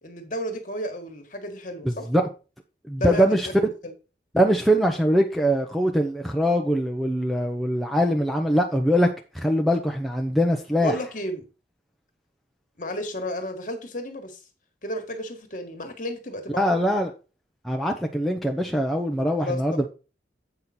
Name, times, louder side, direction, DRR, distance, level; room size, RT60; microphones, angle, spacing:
voice 1, 0.0-2.1 3.0-3.9 10.8-11.4 12.8-14.4 14.8-16.6 19.4-19.9, equal, 45° left, 1.6 m, -32 dB
voice 2, 1.8-2.2 2.9-3.5 4.3-9.1 9.3-10.9 16.6-17.1 17.6-19.9, equal, ahead, 0.7 m, -22 dB
8.1 x 5.6 x 4.3 m
head